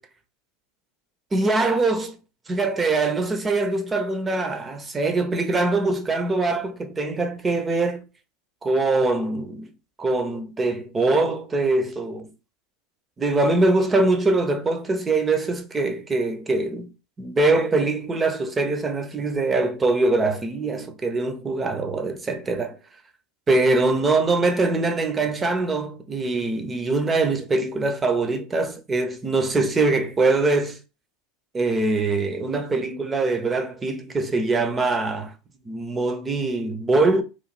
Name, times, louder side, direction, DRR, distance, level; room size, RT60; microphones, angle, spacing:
voice 1, 1.3-2.1 2.5-8.0 8.6-9.7 10.0-12.3 13.2-16.9 17.2-22.8 23.5-30.8 31.5-35.3 35.6-37.2, right 3 dB, 20° right, 0.7 m, -23 dB
3.1 x 2.3 x 4.2 m
hypercardioid pair, 95°, 0 cm